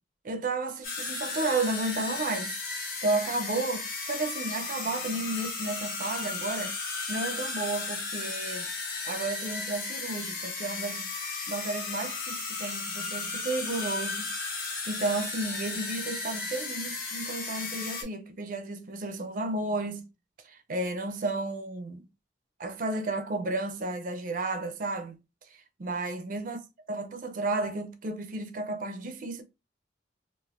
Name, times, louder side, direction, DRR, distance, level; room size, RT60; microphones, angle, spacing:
voice 1, 0.2-2.5 3.0-8.7 9.0-11.1 11.5-14.3 14.9-20.0 20.5-22.0 22.6-25.2 25.8-26.6 26.9-29.4, right 2 dB, 45° right, 0.4 m, -32 dB
sound 1, 0.8-18.0, left 4 dB, 55° left, 1.3 m, -35 dB
3.3 x 2.5 x 2.4 m
head